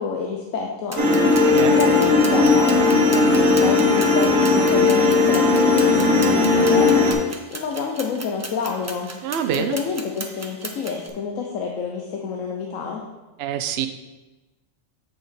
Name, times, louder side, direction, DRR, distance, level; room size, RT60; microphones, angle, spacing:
voice 1, 0.0-9.1 9.6-13.0, left 5 dB, 80° left, 1 dB, 1.1 m, -29 dB
sound 1, 0.9-11.1, right 2 dB, 25° right, 0.3 m, -36 dB
sound 2, 1.0-7.1, left 3 dB, 80° right, 1.7 m, -17 dB
voice 2, 1.5-1.8 9.2-9.8 13.4-13.9, right 9 dB, 60° right, 7 dB, 0.7 m, -25 dB
8.2 x 5.0 x 4.2 m, 1.1 s
omnidirectional pair, 1.4 m